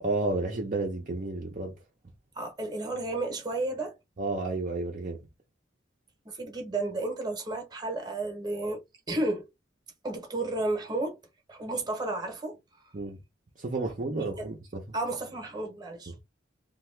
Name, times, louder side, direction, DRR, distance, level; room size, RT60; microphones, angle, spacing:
voice 1, 0.0-1.7 4.2-5.2 12.9-13.2 13.6-14.8 16.1-16.2, right 3 dB, 40° right, 0.6 m, -31 dB
voice 2, 2.4-3.9 6.2-8.8 9.1-9.4 10.0-11.2 11.5-12.6 14.2-14.5 14.9-16.1, right 2 dB, 20° right, 0.9 m, -32 dB
2.8 x 2.3 x 3.2 m
head